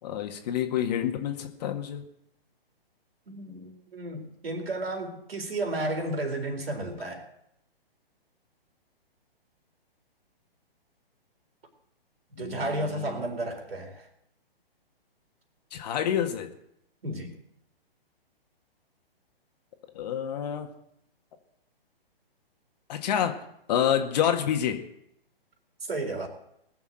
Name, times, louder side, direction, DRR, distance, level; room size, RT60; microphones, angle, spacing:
voice 1, 0.0-2.0 12.4-13.2 15.7-16.5 19.9-20.7 22.9-23.4 23.7-24.8, left 9 dB, 45° left, 5 dB, 2.0 m, -28 dB
voice 2, 3.3-7.2 12.4-14.1 17.0-17.3 25.8-26.3, right 2 dB, 75° right, 4 dB, 4.1 m, -32 dB
19.5 x 7.1 x 7.9 m, 0.77 s
hypercardioid pair, 135°, 30 cm